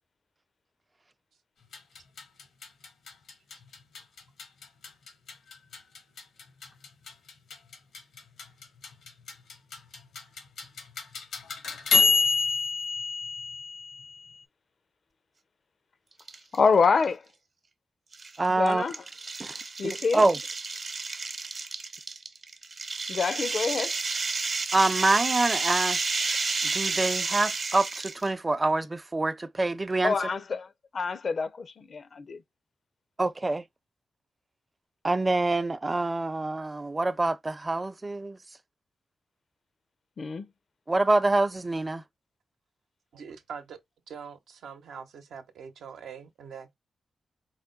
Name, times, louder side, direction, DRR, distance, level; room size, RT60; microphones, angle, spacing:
sound 1, 1.6-14.4, left 5 dB, 85° left, 1.2 m, -30 dB
sound 2, 16.2-16.6 17.0-17.1 18.1-28.3, right 4 dB, 50° right, 0.9 m, -31 dB
voice 1, 16.5-17.2 18.5-18.9 19.8-20.2 23.1-23.9 30.0-30.7 30.9-32.4 40.2-40.5, left 5 dB, 60° left, 0.5 m, -26 dB
voice 2, 18.4-18.8 19.4-19.6 19.8-20.4 24.7-26.4 26.6-30.2 33.2-33.6 35.0-38.4 40.9-42.0, right 2 dB, 30° right, 0.6 m, -26 dB
voice 3, 43.1-43.8 44.1-46.7, right 6 dB, 90° right, 0.8 m, -43 dB
4.8 x 2.2 x 3.8 m
cardioid pair, 60°, 0 cm